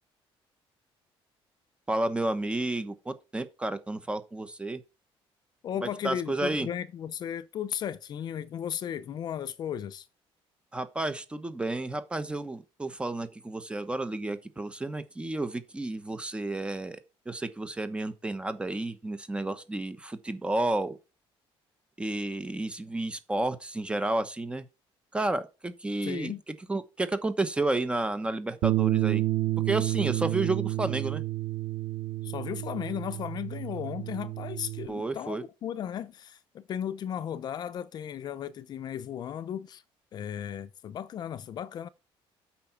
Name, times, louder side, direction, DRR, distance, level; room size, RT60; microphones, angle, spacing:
voice 1, 1.9-4.8 5.8-6.7 10.7-17.0 17.3-21.0 22.0-24.6 25.1-26.3 26.7-29.2 29.7-31.2 34.9-35.4, right 2 dB, 10° right, 1.0 m, -31 dB
voice 2, 5.6-10.1 26.0-26.4 32.2-39.8 40.1-41.9, left 9 dB, 45° left, 0.6 m, -35 dB
Bass guitar, 28.6-34.9, right 17 dB, 80° right, 0.5 m, -30 dB
8.5 x 5.8 x 5.5 m
cardioid pair, 165°, 10 cm